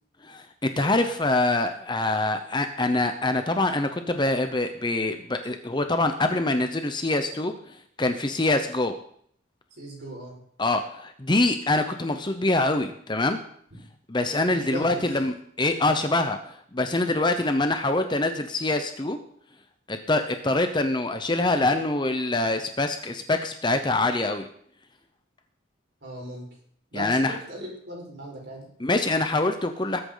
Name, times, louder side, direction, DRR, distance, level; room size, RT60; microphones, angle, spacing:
voice 1, 0.2-7.5 8.0-8.9 10.6-13.4 14.1-19.2 19.9-24.5 26.9-27.3 28.8-30.0, left 2 dB, 20° left, 7 dB, 0.8 m, -25 dB
voice 2, 9.7-10.4 13.7-13.8 14.5-15.1 26.0-26.5 26.9-28.7, right 1 dB, 55° right, -2 dB, 5.1 m, -38 dB
20.0 x 8.3 x 4.0 m, 0.63 s
head